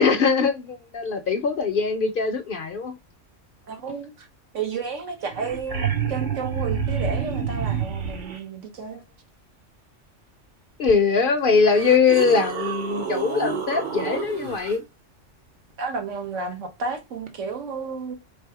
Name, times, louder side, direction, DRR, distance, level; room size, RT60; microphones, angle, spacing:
voice 1, 0.0-2.9 10.8-14.8, left 5 dB, 55° left, 0.6 m, -21 dB
voice 2, 3.7-4.3 4.5-9.0 15.8-18.1, right 5 dB, 75° right, 1.4 m, -32 dB
sound 1, 5.0-5.1 5.3-8.4 10.9-11.0 11.6-14.7 17.3-17.4, right 7 dB, 45° right, 0.8 m, -28 dB
3.4 x 3.3 x 4.7 m
omnidirectional pair, 1.3 m